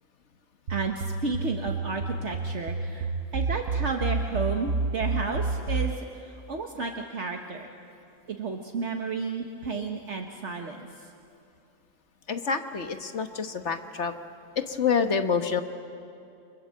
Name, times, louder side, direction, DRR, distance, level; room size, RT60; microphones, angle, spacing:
voice 1, 0.7-7.7 8.3-10.9, right 4 dB, 65° right, 2 dB, 1.7 m, -32 dB
sound 1, 0.7-6.0, right 4 dB, 80° right, 1.3 m, -29 dB
voice 2, 12.3-14.1 14.6-15.6, left 6 dB, 60° left, 7 dB, 1.5 m, -27 dB
29.5 x 25.5 x 7.7 m, 2.5 s
omnidirectional pair, 1.3 m